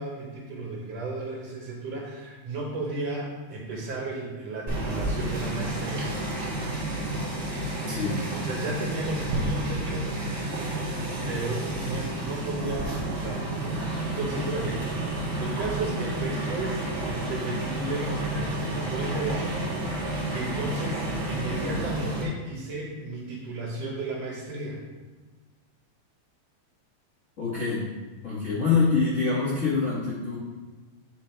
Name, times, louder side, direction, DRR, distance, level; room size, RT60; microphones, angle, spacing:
voice 1, 0.0-6.1 8.3-10.6 11.3-15.0 15.4-19.7 20.0-24.8 28.4-28.6, right 2 dB, 65° right, -3 dB, 2.1 m, -34 dB
sound 1, 4.7-22.2, right 1 dB, 30° right, 1.4 m, -31 dB
sound 2, 9.3-11.3, right 2 dB, 90° right, 2.3 m, -33 dB
voice 2, 27.4-27.8 28.2-30.4, left 4 dB, 55° left, -8 dB, 0.8 m, -25 dB
7.7 x 4.4 x 4.4 m, 1.3 s
omnidirectional pair, 3.4 m